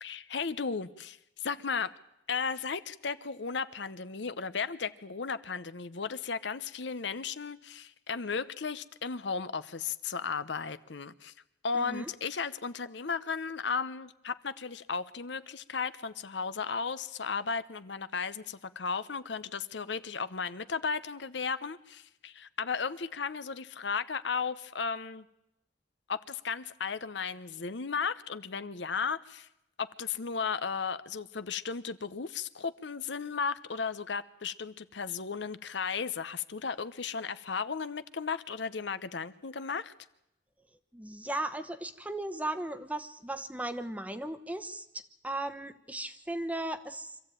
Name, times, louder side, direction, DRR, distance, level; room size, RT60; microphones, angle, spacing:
voice 1, 0.0-1.9 2.3-11.3 11.6-25.2 26.1-29.5 29.8-39.9, left 5 dB, 70° left, 13 dB, 0.8 m, -35 dB
voice 2, 11.7-12.1 40.9-44.9 45.2-47.2, right 1 dB, 10° right, 10 dB, 1.0 m, -36 dB
25.0 x 14.5 x 9.0 m, 0.85 s
head